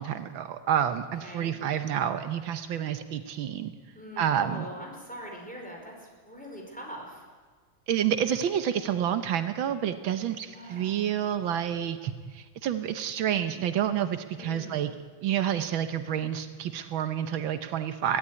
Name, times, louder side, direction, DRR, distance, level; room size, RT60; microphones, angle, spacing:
voice 1, 0.0-3.7 4.2-4.7 7.9-14.9 15.2-18.2, right 9 dB, 80° right, 9 dB, 1.7 m, -29 dB
voice 2, 1.2-1.5 3.9-7.2 10.5-11.1 14.4-14.9, equal, 5° left, -1 dB, 4.8 m, -42 dB
22.5 x 17.0 x 9.8 m, 1.5 s
omnidirectional pair, 2.1 m